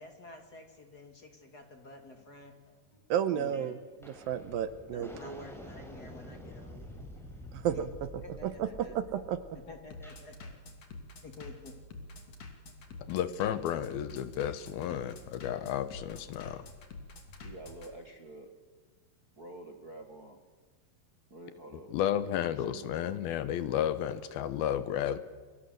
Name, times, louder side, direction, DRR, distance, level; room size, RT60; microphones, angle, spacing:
voice 1, 0.0-2.5 3.3-3.8 4.9-6.9 7.7-7.8 8.2-9.0 9.7-10.6 11.2-11.8, left 2 dB, 30° left, 5 dB, 2.6 m, -50 dB
Bass drum, 1.9-17.9, left 3 dB, 45° left, 3.6 m, -48 dB
voice 2, 3.1-5.1 7.5-9.6, right 9 dB, 70° right, 12 dB, 2.6 m, -33 dB
sound 1, 3.5-3.7 4.0-10.2, equal, ahead, 4.9 m, -48 dB
voice 3, 4.9-5.5 6.8-6.9 8.3-8.4 9.1-9.2 17.4-18.5 19.4-20.4 21.3-21.9 22.5-23.2, right 2 dB, 35° right, 4 dB, 1.6 m, -48 dB
voice 4, 13.1-16.7 21.9-25.2, left 10 dB, 75° left, 13 dB, 2.9 m, -32 dB
29.0 x 24.5 x 7.9 m, 1.4 s
omnidirectional pair, 4.5 m